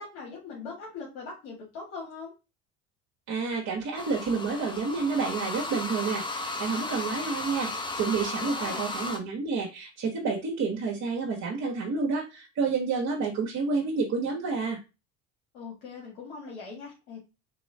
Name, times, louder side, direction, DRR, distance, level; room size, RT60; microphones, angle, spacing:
voice 1, 0.0-2.3 8.4-9.0 15.5-17.2, left 4 dB, 70° left, -3 dB, 1.8 m, -41 dB
voice 2, 3.3-14.8, right 4 dB, 45° right, -1 dB, 1.2 m, -29 dB
sound 1, 4.0-9.2, left 2 dB, 10° left, 0.8 m, -34 dB
3.6 x 2.9 x 3.3 m, 0.28 s
hypercardioid pair, 70°, 40 cm